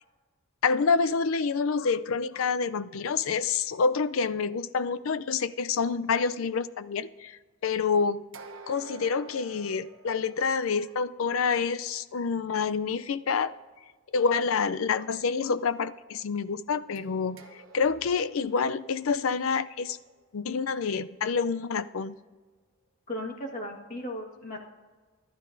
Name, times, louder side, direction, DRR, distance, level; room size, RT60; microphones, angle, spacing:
voice 1, 0.6-8.2 8.7-13.5 14.1-17.4 17.7-20.0 20.3-22.2, left 5 dB, 75° left, 14 dB, 0.5 m, -27 dB
sound 1, 8.3-11.0 17.0-21.0, right 3 dB, 65° right, 1.0 m, -50 dB
voice 2, 23.1-24.6, left 1 dB, 40° left, 0 dB, 1.7 m, -36 dB
25.0 x 12.0 x 2.6 m, 1.4 s
head